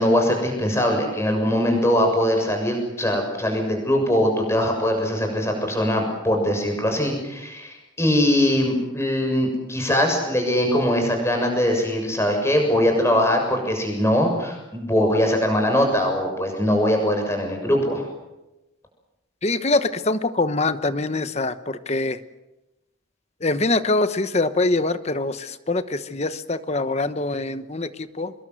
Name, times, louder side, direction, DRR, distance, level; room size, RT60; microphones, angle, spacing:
voice 1, 0.0-18.0, left 1 dB, 15° left, 3 dB, 6.8 m, -21 dB
voice 2, 19.4-22.2 23.4-28.3, left 2 dB, 35° left, 12 dB, 1.0 m, -24 dB
25.0 x 22.0 x 7.8 m, 0.98 s
head